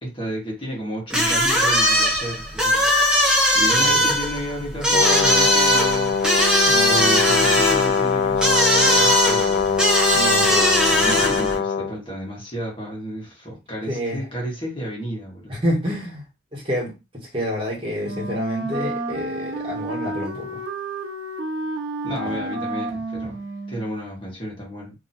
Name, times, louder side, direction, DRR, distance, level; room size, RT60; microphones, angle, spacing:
voice 1, 0.0-2.9 3.5-6.2 6.8-9.8 11.0-15.6 22.0-23.4 23.7-24.9, equal, 30° left, -3 dB, 1.5 m, -32 dB
sound 1, 1.1-11.6, equal, 5° right, 1.0 m, -19 dB
voice 2, 3.7-4.1 6.6-7.0 10.1-11.2 13.9-14.2 15.5-16.2 16.5-16.9 17.3-20.6 22.2-22.4, equal, 30° right, -3 dB, 1.8 m, -28 dB
Brass instrument, 4.9-11.9, left 6 dB, 55° left, 0.4 m, -22 dB
Wind instrument woodwind instrument, 18.0-23.9, right 2 dB, 75° right, 0.8 m, -30 dB
2.9 x 2.9 x 4.3 m, 0.26 s
head